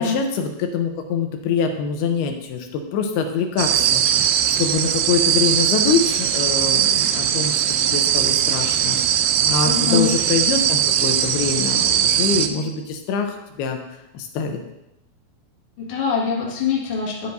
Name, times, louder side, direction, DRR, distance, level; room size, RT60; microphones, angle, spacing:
voice 1, 0.0-13.8 14.1-14.6, left 5 dB, 90° left, 5 dB, 2.9 m, -24 dB
sound 1, 3.6-12.5, right 9 dB, 85° right, 1.9 m, -20 dB
voice 2, 9.6-10.1 15.8-17.3, left 5 dB, 45° left, -4 dB, 2.4 m, -23 dB
10.0 x 9.9 x 2.7 m, 0.89 s
omnidirectional pair, 4.4 m